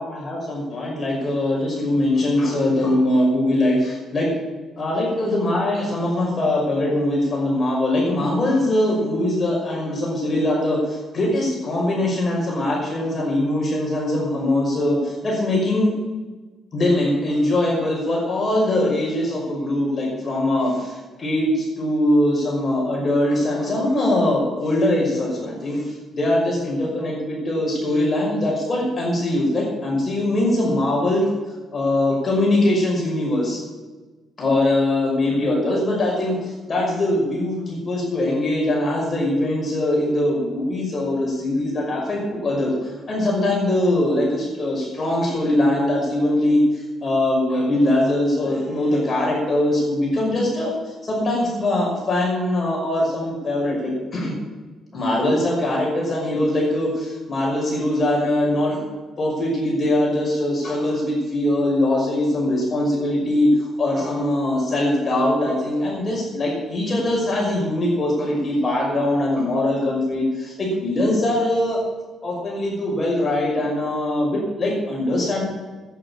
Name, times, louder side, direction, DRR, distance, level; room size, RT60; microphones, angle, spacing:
voice 1, 0.0-4.3 4.8-15.9 16.7-31.3 31.7-33.6 34.4-54.3 54.9-58.8 59.2-71.8 72.2-75.4, left 1 dB, 40° left, -2 dB, 5.8 m, -22 dB
11.0 x 9.6 x 8.8 m, 1.2 s
cardioid pair, 90°, 0 cm